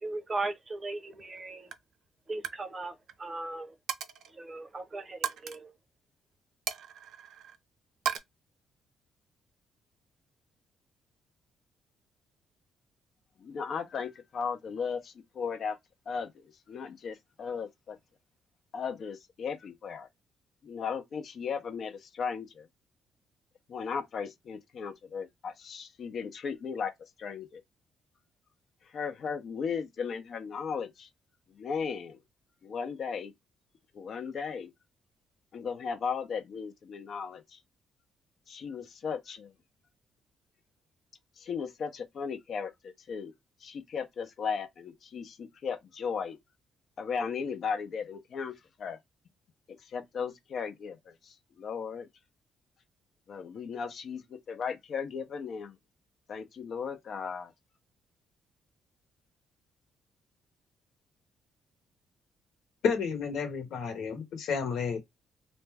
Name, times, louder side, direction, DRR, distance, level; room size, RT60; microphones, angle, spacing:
voice 1, 0.0-1.7 2.3-3.7 4.3-5.7, right 2 dB, 30° right, 0.7 m, -37 dB
Coin (dropping), 1.1-1.4 1.7-1.9 2.3-2.6 2.9-3.1 3.9-4.3 5.2-5.6 6.7-7.6 8.1-8.2, right 8 dB, 75° right, 0.4 m, -35 dB
voice 2, 13.4-15.8 16.1-18.0 18.7-20.1 20.6-22.7 23.7-26.9 27.2-27.6 28.9-31.1 31.6-32.2 32.6-33.3 33.9-34.7 35.5-37.6 38.5-39.5 41.4-43.3 43.6-46.4 47.0-49.0 49.9-52.1 53.3-55.8 56.3-57.5, left 6 dB, 60° left, 0.6 m, -36 dB
voice 3, 62.8-65.0, left 6 dB, 80° left, 1.0 m, -31 dB
2.5 x 2.2 x 3.3 m
cardioid pair, 90°, 0 cm